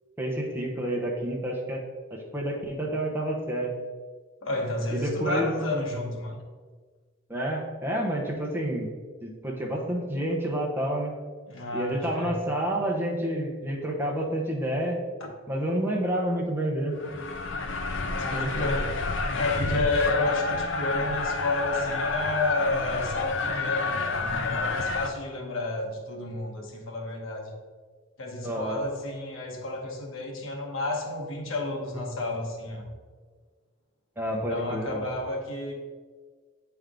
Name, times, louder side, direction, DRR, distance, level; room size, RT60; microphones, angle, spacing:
voice 1, 0.2-1.8 2.1-3.7 4.9-5.6 7.3-8.9 9.2-11.1 11.7-15.0 15.5-17.0 18.2-18.8 28.4-28.8 34.2-35.1, right 1 dB, 10° right, -2 dB, 0.8 m, -29 dB
voice 2, 4.4-6.4 11.5-12.4 18.0-18.9 19.3-27.5 28.2-32.9 34.3-35.7, left 2 dB, 90° left, 0 dB, 1.1 m, -31 dB
sound 1, 17.0-25.1, left 3 dB, 65° left, 0.6 m, -29 dB
8.0 x 3.4 x 3.7 m, 1.5 s
head